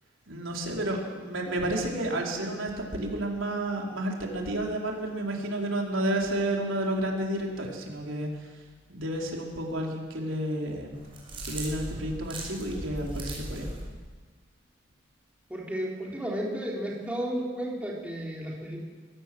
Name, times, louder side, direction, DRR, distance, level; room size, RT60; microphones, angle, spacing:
voice 1, 0.3-8.3 8.9-11.0 11.4-13.7, right 1 dB, 85° right, 0 dB, 4.3 m, -31 dB
sound 1, 10.9-13.8, right 1 dB, 25° right, 6.4 m, -38 dB
voice 2, 15.5-18.8, equal, 5° right, -3 dB, 4.0 m, -33 dB
24.0 x 17.5 x 7.8 m, 1.5 s
head